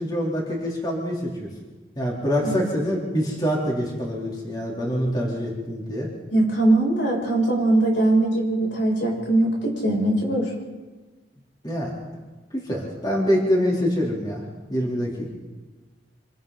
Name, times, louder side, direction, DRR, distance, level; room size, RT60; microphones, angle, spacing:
voice 1, 0.0-1.5 2.0-6.1 11.6-11.9 12.5-14.4 14.7-15.3, equal, 20° left, -3 dB, 3.6 m, -25 dB
voice 2, 6.3-10.5, right 2 dB, 80° left, -2 dB, 7.3 m, -21 dB
26.5 x 23.5 x 4.1 m, 1.3 s
head